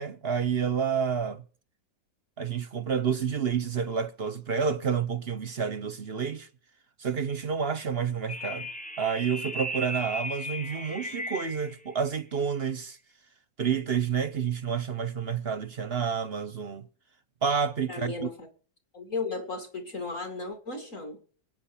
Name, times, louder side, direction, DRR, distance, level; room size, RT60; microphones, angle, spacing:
voice 1, 0.0-1.4 2.4-6.5 7.0-8.7 9.0-13.0 13.6-16.9 17.4-18.3, right 6 dB, 45° right, 0.9 m, -29 dB
sound 1, 8.3-11.8, equal, 5° left, 0.7 m, -36 dB
voice 2, 17.9-18.5 18.9-21.2, left 4 dB, 45° left, 2.8 m, -35 dB
22.5 x 9.4 x 6.0 m
omnidirectional pair, 1.9 m